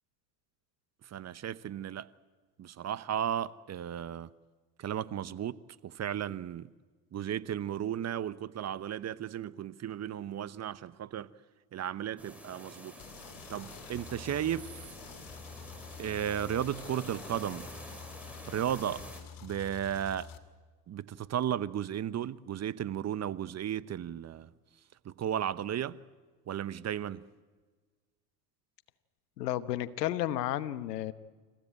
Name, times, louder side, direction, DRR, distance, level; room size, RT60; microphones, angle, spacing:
voice 1, 1.0-2.1 2.6-4.3 4.8-6.7 7.1-11.3 11.7-12.9 13.5-14.7 16.0-17.7 18.4-19.0 19.4-20.3 20.9-24.5 25.0-26.0 26.5-27.2, right 10 dB, 35° right, 0.9 m, -34 dB
sound 1, 12.2-19.2, equal, 5° right, 5.9 m, -48 dB
sound 2, 13.0-20.4, left 7 dB, 45° left, 2.5 m, -49 dB
voice 2, 29.4-31.1, left 13 dB, 85° left, 1.1 m, -32 dB
28.5 x 15.0 x 9.0 m
hypercardioid pair, 80°, 47 cm